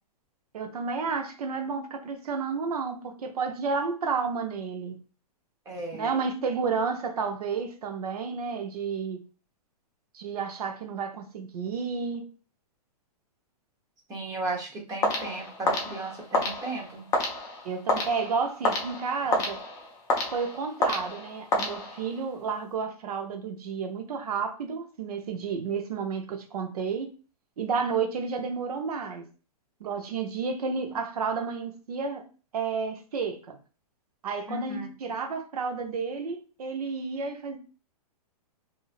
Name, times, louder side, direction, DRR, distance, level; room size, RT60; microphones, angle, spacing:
voice 1, 0.5-5.0 5.9-9.2 10.1-12.3 17.6-19.6 20.3-27.1 27.6-29.2 29.8-32.2 32.5-33.6 34.2-37.6, right 5 dB, 70° right, 0.7 m, -31 dB
voice 2, 5.7-6.1 14.1-17.1 34.5-34.9, right 2 dB, 15° right, 0.8 m, -35 dB
sound 1, 15.0-22.3, left 2 dB, 15° left, 0.4 m, -30 dB
3.0 x 2.6 x 2.4 m
hypercardioid pair, 145°, 20 cm